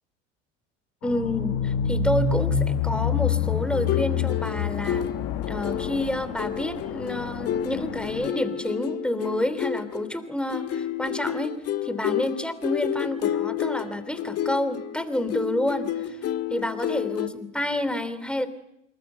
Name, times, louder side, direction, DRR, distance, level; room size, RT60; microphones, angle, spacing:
sound 1, 1.0-8.3, left 7 dB, 60° left, 2.1 m, -27 dB
voice 1, 1.0-5.0 5.5-11.5 11.8-15.9 16.5-18.5, left 1 dB, 5° left, 13 dB, 3.0 m, -29 dB
sound 2, 3.7-17.3, left 10 dB, 40° left, 1.8 m, -31 dB
26.5 x 22.5 x 8.0 m, 0.81 s
figure-of-eight pair, 70°, 37 cm